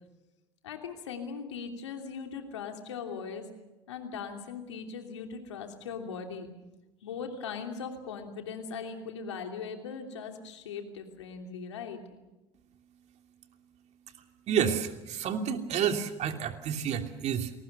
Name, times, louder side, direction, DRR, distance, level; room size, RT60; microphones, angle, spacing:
voice 1, 0.6-3.5 3.9-6.5 7.0-12.2, left 6 dB, 90° left, 4 dB, 3.0 m, -39 dB
voice 2, 14.5-17.5, right 8 dB, 50° right, 5 dB, 2.8 m, -30 dB
27.5 x 19.5 x 6.8 m, 1.1 s
hypercardioid pair, 75°, 14 cm